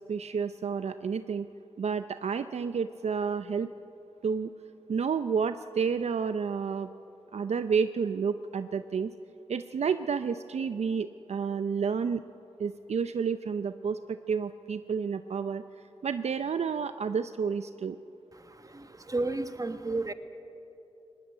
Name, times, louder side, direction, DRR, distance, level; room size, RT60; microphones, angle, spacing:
voice 1, 0.0-1.5 1.8-3.7 4.2-4.5 4.9-6.9 7.3-9.1 9.5-12.2 12.6-15.6 16.0-18.0, right 6 dB, 75° right, 11 dB, 0.5 m, -30 dB
voice 2, 18.3-20.1, right 2 dB, 30° right, 9 dB, 1.3 m, -33 dB
19.5 x 17.5 x 8.6 m, 2.8 s
cardioid pair, 40°, 11 cm